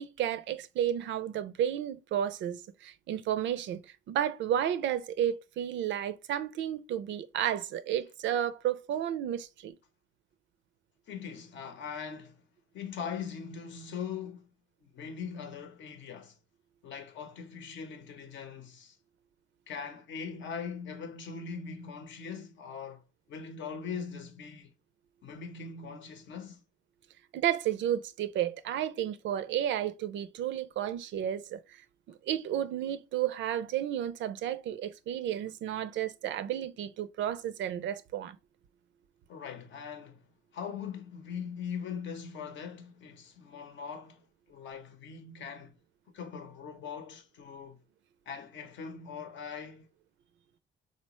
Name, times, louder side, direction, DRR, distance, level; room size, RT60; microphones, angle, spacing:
voice 1, 0.0-9.7 27.3-31.6 32.1-38.4, right 10 dB, 70° right, 0.4 m, -32 dB
voice 2, 11.1-12.4 12.7-14.5 14.8-16.4 16.8-19.0 19.7-23.0 23.3-24.7 25.2-26.6 39.3-40.2 40.5-44.2 44.5-45.8 46.1-47.8 48.3-49.9, left 6 dB, 70° left, 0.7 m, -41 dB
3.9 x 2.1 x 2.9 m
cardioid pair, 90°, 20 cm